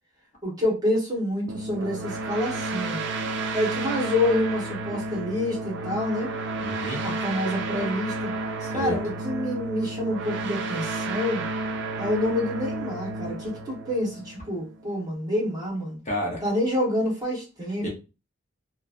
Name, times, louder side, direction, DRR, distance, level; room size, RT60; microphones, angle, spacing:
voice 1, 0.4-3.0 3.5-6.3 7.0-8.3 8.7-11.4 12.0-16.0 16.4-17.9, left 1 dB, 20° right, -4 dB, 1.1 m, -27 dB
sound 1, 1.5-14.8, right 2 dB, 60° right, 0.4 m, -31 dB
voice 2, 6.6-7.0 8.6-8.9 16.0-16.4 17.8-17.9, equal, 35° left, -2 dB, 0.8 m, -30 dB
3.1 x 2.2 x 2.5 m, 0.30 s
head